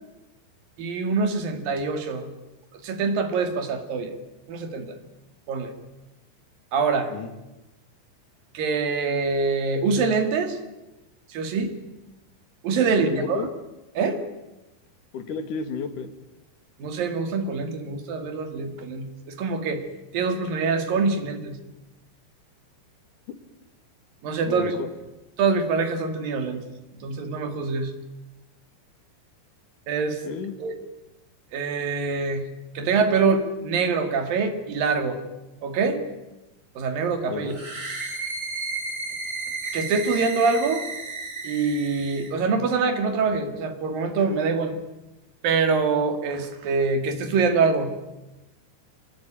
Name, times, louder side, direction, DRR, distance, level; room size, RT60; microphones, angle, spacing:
voice 1, 0.8-2.3 2.8-4.1 4.5-5.0 5.5-5.7 6.7-7.1 8.5-10.6 11.3-11.7 12.6-13.4 14.0-14.2 16.8-19.8 20.1-21.6 24.2-24.7 25.4-26.6 27.0-27.9 29.9-30.2 30.6-30.7 31.5-32.5 32.8-35.2 35.6-36.0 36.8-37.5 39.7-40.8 41.4-44.7 45.4-47.9, right 4 dB, 60° right, 7 dB, 3.8 m, -24 dB
voice 2, 12.9-13.5 15.1-16.1 24.4-24.9 30.2-30.6 37.3-37.6, left 5 dB, 55° left, 8 dB, 3.3 m, -32 dB
sound 1, 37.5-42.3, right 3 dB, 20° right, 3.2 m, -33 dB
26.5 x 19.5 x 9.0 m, 1.0 s
omnidirectional pair, 4.9 m